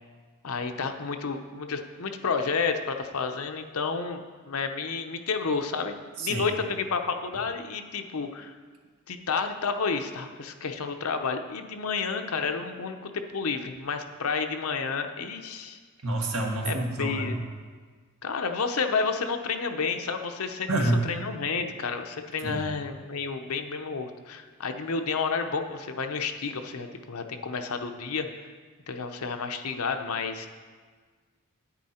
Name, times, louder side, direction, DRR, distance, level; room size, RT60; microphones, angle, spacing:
voice 1, 0.4-8.5 9.1-15.8 16.6-17.4 18.2-28.5 28.9-30.5, left 5 dB, 75° left, 6 dB, 0.8 m, -31 dB
voice 2, 16.0-17.4 20.7-21.0 22.4-22.7, right 1 dB, 75° right, 1 dB, 1.5 m, -27 dB
10.0 x 8.4 x 4.3 m, 1.5 s
head